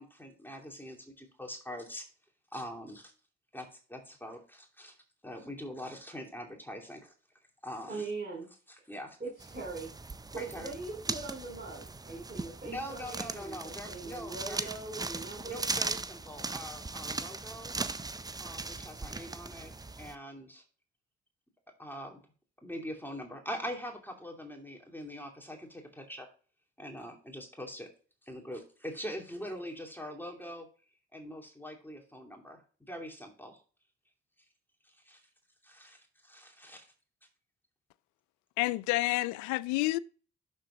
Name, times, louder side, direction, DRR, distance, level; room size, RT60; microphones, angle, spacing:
voice 1, 0.0-2.1 2.5-3.1 3.5-5.0 5.2-7.1 7.6-8.1 8.7-9.2 10.4-10.7 12.6-14.7 15.5-17.8 18.4-20.6 21.8-22.2 22.6-26.3 26.8-27.9 28.2-30.7 31.1-33.6 34.8-35.2 35.6-36.9, equal, 5° left, 2.7 m, -43 dB
voice 2, 7.9-8.5 9.2-9.9 10.3-15.7, right 3 dB, 35° right, 2.9 m, -41 dB
sound 1, 9.4-20.1, right 3 dB, 10° right, 0.5 m, -39 dB
voice 3, 38.6-40.0, left 20 dB, 65° left, 0.5 m, -29 dB
11.5 x 3.9 x 3.7 m
figure-of-eight pair, 45°, 32 cm